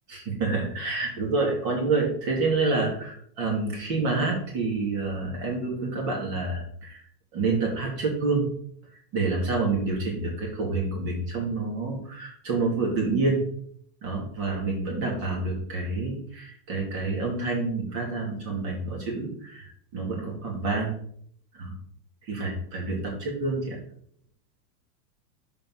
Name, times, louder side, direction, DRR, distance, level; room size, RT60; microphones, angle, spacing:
voice 1, 0.1-7.0 7.3-8.5 9.1-13.5 14.0-20.9 21.5-21.7 22.3-23.8, right 3 dB, 40° right, -1 dB, 2.8 m, -28 dB
7.2 x 5.2 x 5.6 m, 0.63 s
supercardioid pair, 165°, 48 cm